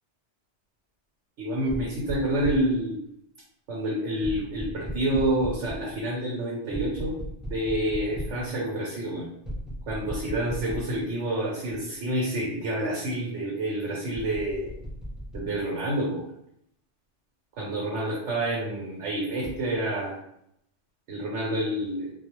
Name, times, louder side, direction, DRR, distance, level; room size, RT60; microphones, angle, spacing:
voice 1, 1.4-3.0 3.7-7.1 7.5-9.3 9.9-14.8 15.3-16.2 17.6-20.2 21.1-22.1, right 1 dB, 90° right, -4 dB, 1.0 m, -28 dB
sound 1, 1.7-2.8 4.2-5.9 6.7-8.4 9.4-11.1 11.7-11.8 14.1-15.5 19.4-19.6, equal, ahead, 0.3 m, -36 dB
2.3 x 2.1 x 2.9 m, 0.75 s
omnidirectional pair, 1.2 m